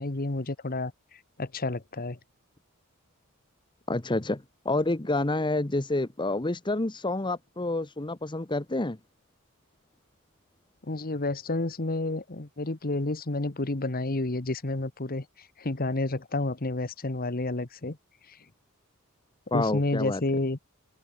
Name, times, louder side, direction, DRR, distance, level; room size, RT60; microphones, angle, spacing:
voice 1, 0.0-2.2 10.8-18.0 18.3-18.4 19.5-20.6, left 2 dB, 40° left, 1.3 m, -30 dB
voice 2, 3.9-9.0 19.5-20.2, left 2 dB, 20° left, 1.0 m, -28 dB
head